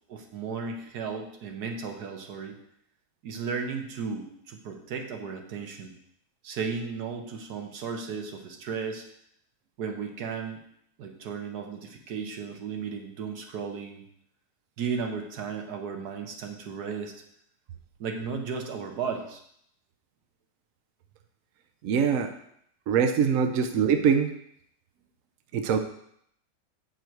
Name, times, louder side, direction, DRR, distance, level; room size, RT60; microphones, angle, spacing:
voice 1, 0.1-2.6 3.2-5.9 6.4-9.0 9.8-10.6 11.0-14.0 14.8-17.1 18.0-19.4, right 5 dB, 85° right, 3 dB, 1.5 m, -35 dB
voice 2, 21.8-22.3 22.9-24.3 25.5-25.8, right 7 dB, 65° right, 6 dB, 0.9 m, -23 dB
8.0 x 4.6 x 4.5 m, 0.71 s
omnidirectional pair, 1.7 m